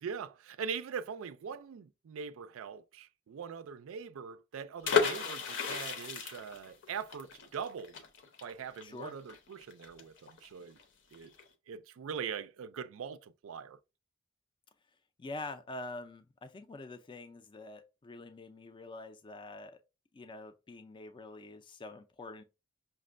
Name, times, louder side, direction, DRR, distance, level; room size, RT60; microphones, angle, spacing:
voice 1, 0.0-8.0 8.4-10.8 11.1-11.3 11.7-13.8, right 6 dB, 70° right, 0.4 m, -42 dB
sound 1, 4.8-10.5 10.8-10.9 11.1-11.4, left 6 dB, 65° left, 0.7 m, -33 dB
voice 2, 8.8-9.1 15.2-19.7 20.1-22.4, left 2 dB, 25° left, 0.3 m, -45 dB
5.7 x 2.1 x 2.4 m
head